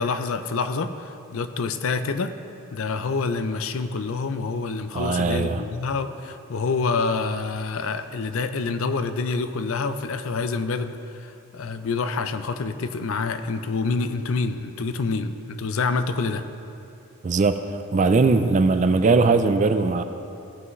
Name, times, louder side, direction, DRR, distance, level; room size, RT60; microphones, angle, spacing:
voice 1, 0.0-2.3 2.7-16.4, left 4 dB, 65° left, 10 dB, 0.5 m, -27 dB
voice 2, 4.9-5.6 17.2-20.0, right 3 dB, 35° right, 9 dB, 0.3 m, -20 dB
16.5 x 5.7 x 3.1 m, 2.8 s
head